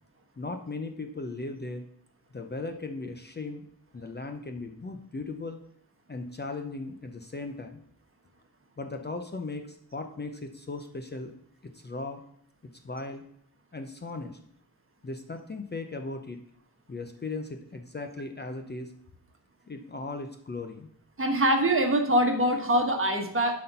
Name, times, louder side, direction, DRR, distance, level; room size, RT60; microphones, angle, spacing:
voice 1, 0.4-1.8 2.3-3.6 3.9-5.6 6.1-7.8 8.8-11.3 11.6-12.2 12.8-13.2 13.7-14.4 15.0-16.4 16.9-18.9 19.6-20.9, left 3 dB, 25° left, 6 dB, 0.7 m, -37 dB
voice 2, 21.2-23.6, right 1 dB, 35° right, 4 dB, 1.3 m, -24 dB
11.5 x 4.3 x 5.4 m, 0.69 s
wide cardioid pair, 150°, 37 cm